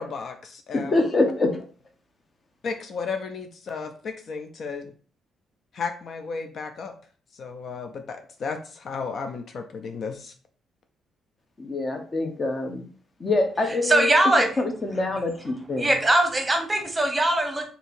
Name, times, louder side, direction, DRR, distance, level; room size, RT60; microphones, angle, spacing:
voice 1, 0.0-1.0 2.6-4.9 5.7-6.9 7.3-10.3, left 5 dB, 55° left, 6 dB, 0.4 m, -34 dB
voice 2, 0.7-1.5 11.6-12.8 13.2-14.1 14.6-15.9, left 2 dB, 35° left, 4 dB, 0.8 m, -25 dB
voice 3, 13.8-14.5 15.8-17.7, right 1 dB, 15° right, 4 dB, 0.9 m, -21 dB
2.8 x 2.7 x 4.3 m, 0.42 s
cardioid pair, 90°, 0 cm